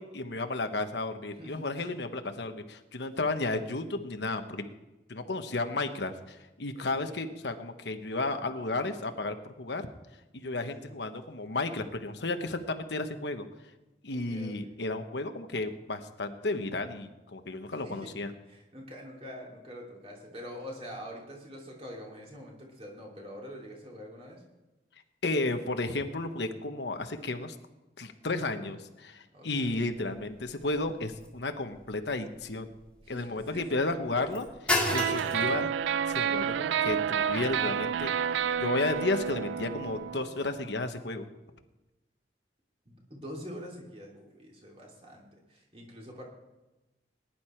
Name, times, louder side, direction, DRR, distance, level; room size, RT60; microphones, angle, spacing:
voice 1, 0.0-4.7 5.1-9.9 10.3-13.5 14.0-18.3 25.2-27.5 28.0-32.7 33.1-34.5 34.9-35.7 36.1-38.1 38.6-41.3, left 2 dB, 70° left, 7 dB, 1.1 m, -33 dB
voice 2, 1.4-1.9 6.7-7.3 10.6-11.0 14.1-14.8 17.7-18.1 18.5-24.4 29.3-29.7 33.0-34.4 42.8-46.2, equal, 30° right, -2 dB, 3.1 m, -45 dB
sound 1, 29.9-40.0, left 2 dB, 5° left, 1.9 m, -38 dB
sound 2, 34.9-40.6, right 8 dB, 90° right, 0.3 m, -30 dB
19.5 x 10.5 x 4.5 m, 1.0 s
head